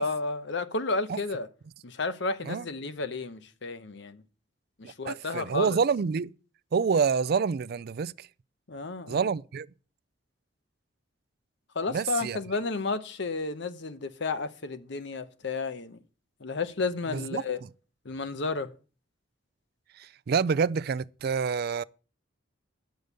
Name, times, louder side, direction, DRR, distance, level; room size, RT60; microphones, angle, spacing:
voice 1, 0.0-1.5 1.8-4.2 4.8-5.8 8.7-9.3 11.7-16.0 16.4-17.6 18.0-18.7, left 3 dB, 65° left, 0.9 m, -32 dB
voice 2, 5.1-6.3 6.7-8.3 9.1-9.7 11.9-12.4 17.1-17.4 20.0-21.8, right 5 dB, 55° right, 0.4 m, -27 dB
9.1 x 6.6 x 6.7 m
head